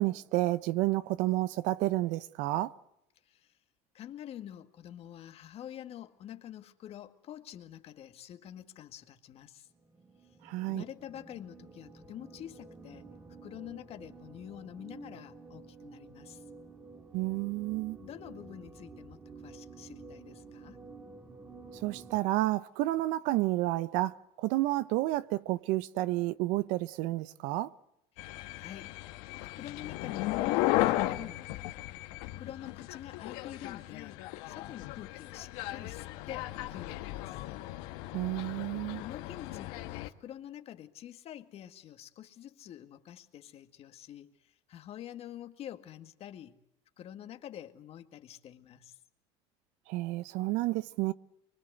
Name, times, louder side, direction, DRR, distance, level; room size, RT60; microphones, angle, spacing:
voice 1, 0.0-2.7 10.4-10.8 17.1-18.0 21.8-27.7 38.1-39.0 49.9-51.1, right 17 dB, 75° right, 1.0 m, -30 dB
voice 2, 3.2-3.6 3.9-9.7 10.7-13.1 13.4-16.4 18.0-20.8 28.1-29.0 29.6-31.7 32.4-37.4 39.0-46.6 47.0-49.0, left 11 dB, 50° left, 2.0 m, -47 dB
sound 1, 9.7-22.2, right 4 dB, 15° right, 2.1 m, -51 dB
sound 2, 28.2-40.1, left 16 dB, 80° left, 1.6 m, -35 dB
24.5 x 24.0 x 8.1 m
supercardioid pair, 115°, 13 cm